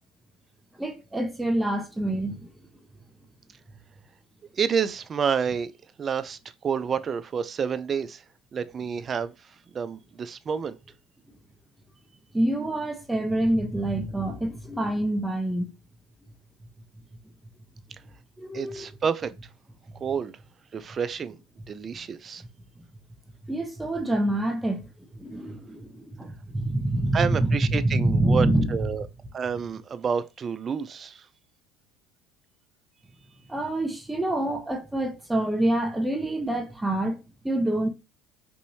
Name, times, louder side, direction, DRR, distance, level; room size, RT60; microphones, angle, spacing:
voice 1, 0.8-2.5 12.3-15.7 18.4-18.9 23.5-24.8 25.1-28.9 33.5-37.9, right 1 dB, 10° right, 1.0 m, -26 dB
voice 2, 4.5-5.7 6.0-8.2 8.5-9.3 9.7-10.8 18.5-19.3 20.0-20.3 20.7-21.4 21.7-22.4 27.1-29.1 29.3-31.2, right 6 dB, 35° right, 0.4 m, -29 dB
4.7 x 2.7 x 2.7 m
hypercardioid pair, 75°, 0 cm